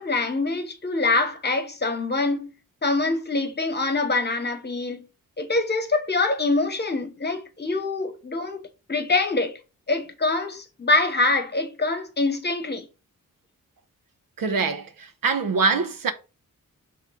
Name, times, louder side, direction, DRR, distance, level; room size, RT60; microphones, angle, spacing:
voice 1, 0.0-2.5 2.8-5.1 5.4-8.6 8.9-9.6 9.9-12.8, left 3 dB, 30° left, 1.1 m, -24 dB
voice 2, 14.4-14.9 15.2-16.1, right 4 dB, 85° right, 1.0 m, -23 dB
6.7 x 3.5 x 4.7 m
wide cardioid pair, 135°, 33 cm